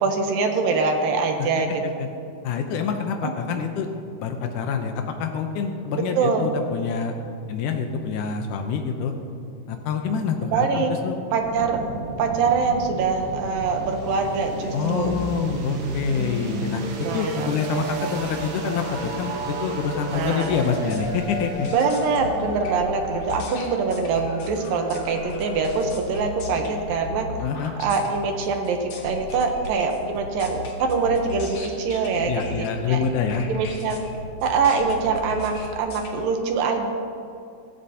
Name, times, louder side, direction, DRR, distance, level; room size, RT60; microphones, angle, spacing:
voice 1, 0.0-1.8 3.2-3.3 6.2-6.5 10.5-10.9 11.3-11.8 12.2-15.1 17.0-17.5 20.1-20.5 21.7-27.3 27.8-33.0 33.5-34.1 34.4-36.9, right 4 dB, 70° right, 4 dB, 2.4 m, -24 dB
voice 2, 2.4-3.9 4.2-7.2 7.5-9.1 9.7-11.2 14.7-21.7 27.4-27.7 32.3-33.5, left 6 dB, 85° left, 4 dB, 1.8 m, -26 dB
sound 1, 11.4-24.2, right 2 dB, 90° right, 3.6 m, -33 dB
sound 2, 18.7-25.9, left 3 dB, 70° left, 2.9 m, -37 dB
sound 3, 20.1-36.1, left 2 dB, 55° left, 1.8 m, -37 dB
16.0 x 16.0 x 2.9 m, 2.5 s
omnidirectional pair, 4.6 m